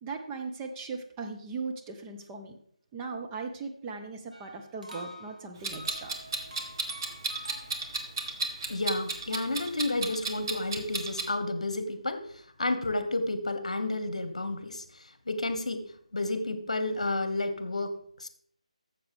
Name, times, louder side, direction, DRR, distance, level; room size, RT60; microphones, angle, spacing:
voice 1, 0.0-2.6 2.9-6.2, right 4 dB, 15° right, 1 dB, 0.6 m, -38 dB
sound 1, 4.3-8.1, left 1 dB, 80° right, 1.9 m, -47 dB
Clock, 5.6-11.3, right 3 dB, 35° right, 1.2 m, -33 dB
voice 2, 8.7-18.3, left 2 dB, 65° left, 10 dB, 1.1 m, -31 dB
12.5 x 7.3 x 3.4 m, 0.64 s
figure-of-eight pair, 155°, 4 cm